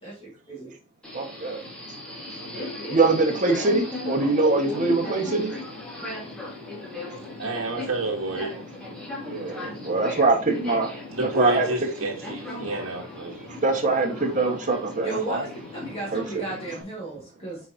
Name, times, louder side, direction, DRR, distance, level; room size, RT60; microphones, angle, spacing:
voice 1, 0.0-0.7 15.0-17.6, right 2 dB, 30° left, 2.2 m, -34 dB
Subway metro underground, 1.0-16.8, left 2 dB, 5° left, 2.4 m, -37 dB
voice 2, 1.1-1.6 2.9-5.5 9.2-11.7 13.5-15.4 16.1-16.4, right 3 dB, 40° right, 1.6 m, -23 dB
voice 3, 7.4-8.6 11.1-13.5, right 2 dB, 80° right, 1.5 m, -30 dB
8.5 x 4.8 x 2.9 m
head